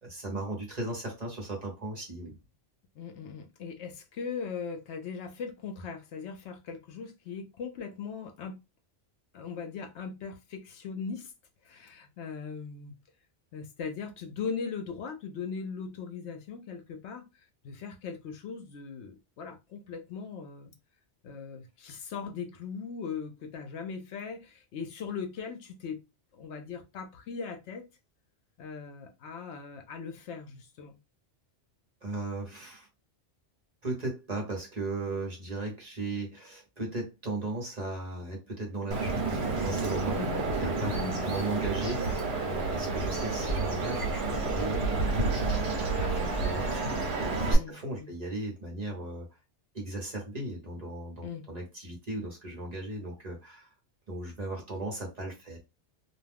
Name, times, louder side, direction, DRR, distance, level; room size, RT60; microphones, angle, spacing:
voice 1, 0.0-2.3 32.0-32.9 33.8-40.2 40.5-45.2 46.1-49.3 49.7-53.7 54.1-55.6, right 2 dB, 35° right, 1.0 m, -37 dB
voice 2, 3.0-8.6 9.3-11.3 11.6-12.9 13.5-20.7 21.2-26.0 26.3-27.9 28.6-31.0 40.1-40.4 40.9-41.3 46.0-46.3 47.5-48.1 51.2-51.4, left 5 dB, 70° left, 0.8 m, -39 dB
Bird vocalization bird call bird song, 38.9-47.5, right 3 dB, 60° right, 1.2 m, -30 dB
2.5 x 2.3 x 3.3 m
omnidirectional pair, 1.2 m